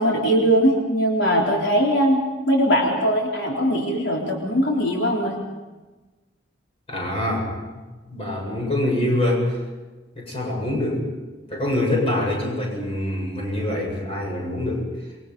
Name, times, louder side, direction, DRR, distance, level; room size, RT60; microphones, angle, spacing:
voice 1, 0.0-5.4, equal, 90° left, -2 dB, 4.0 m, -20 dB
voice 2, 6.9-7.5 8.1-9.6 10.1-11.1 11.5-14.9, left 1 dB, 35° left, -1 dB, 8.0 m, -24 dB
28.5 x 23.0 x 5.5 m, 1.2 s
head